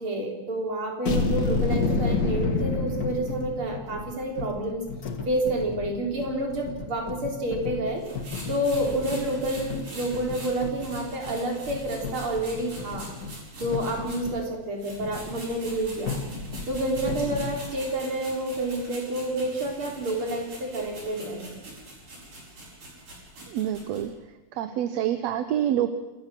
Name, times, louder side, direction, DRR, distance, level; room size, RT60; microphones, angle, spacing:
voice 1, 0.0-4.9 5.3-8.0 8.5-13.1 13.6-16.2 16.7-21.5, right 1 dB, 45° right, 1 dB, 4.4 m, -29 dB
sound 1, 1.1-3.8, left 4 dB, 60° left, 3.6 m, -26 dB
sound 2, 1.5-14.5 14.9-17.6, left 4 dB, 40° left, 1.6 m, -37 dB
sound 3, 8.0-14.4 14.8-24.0, right 1 dB, 85° right, 9.4 m, -43 dB
voice 2, 23.5-24.1 24.5-25.9, right 11 dB, 70° right, 10 dB, 1.9 m, -27 dB
27.5 x 13.5 x 7.6 m, 1.1 s
omnidirectional pair, 3.5 m